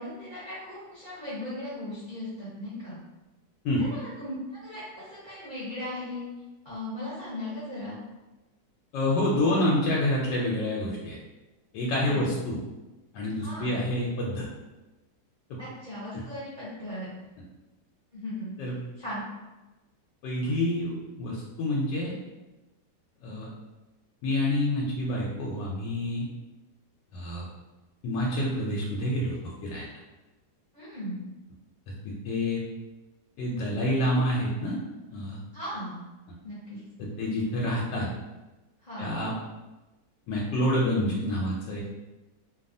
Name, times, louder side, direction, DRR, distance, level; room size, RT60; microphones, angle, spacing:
voice 1, 0.0-3.0 3.8-6.2 6.6-8.0 12.0-12.3 13.4-13.8 15.6-17.1 18.1-18.5 19.0-19.2 30.7-31.2 35.5-36.0 36.4-36.8 38.8-39.1, left 1 dB, 40° left, -11 dB, 0.8 m, -37 dB
voice 2, 8.9-11.2 11.7-12.6 13.1-14.5 15.5-15.6 18.6-18.7 20.2-22.1 23.2-23.5 24.2-26.3 27.1-27.5 28.0-29.4 29.6-29.9 32.0-32.6 33.4-34.8 35.1-35.4 37.0-38.1 39.0-39.3 40.3-41.8, left 1 dB, 85° left, -4 dB, 1.2 m, -27 dB
2.9 x 2.3 x 2.5 m, 1.1 s
omnidirectional pair, 1.9 m